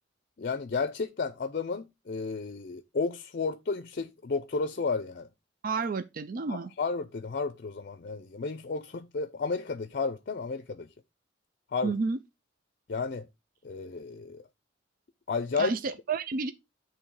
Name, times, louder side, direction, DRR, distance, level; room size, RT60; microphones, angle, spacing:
voice 1, 0.4-5.3 6.5-10.9 11.7-11.9 12.9-13.3 13.6-14.4 15.3-15.7, left 4 dB, 50° left, 0.5 m, -32 dB
voice 2, 5.6-6.7 11.8-12.2 15.6-16.5, right 4 dB, 50° right, 0.4 m, -30 dB
8.6 x 3.2 x 4.7 m
head